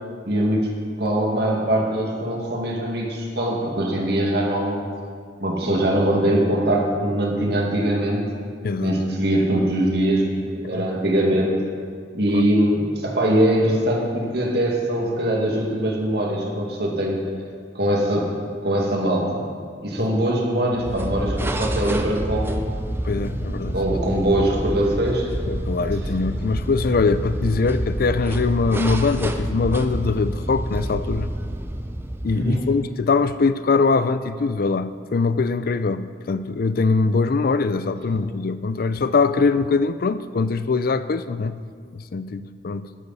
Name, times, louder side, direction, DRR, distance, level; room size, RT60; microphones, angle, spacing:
voice 1, 0.3-0.6 1.0-4.8 5.4-8.3 8.8-11.6 12.1-17.2 17.7-18.4 18.6-19.4 19.8-22.7 23.7-25.3 32.4-32.6 38.1-38.2, right 1 dB, 65° right, -1 dB, 2.0 m, -22 dB
voice 2, 8.6-9.0 10.6-10.9 12.3-12.4 23.0-23.8 25.5-31.3 32.2-41.6 41.9-42.9, left 4 dB, 55° left, 13 dB, 0.4 m, -22 dB
sound 1, 20.7-32.9, right 1 dB, 15° right, 0.6 m, -28 dB
12.0 x 11.5 x 4.2 m, 2.1 s
head